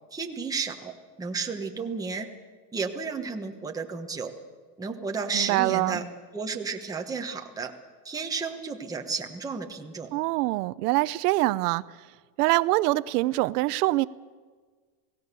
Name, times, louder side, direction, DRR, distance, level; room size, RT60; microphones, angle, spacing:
voice 1, 0.1-0.9 1.2-2.3 2.7-4.3 4.8-6.0 6.3-7.7 8.0-10.1, right 5 dB, 10° right, 1.2 m, -32 dB
voice 2, 5.3-6.0 10.1-11.8 12.4-14.1, right 19 dB, 80° right, 0.7 m, -24 dB
28.0 x 18.0 x 6.9 m
cardioid pair, 175°, 46 cm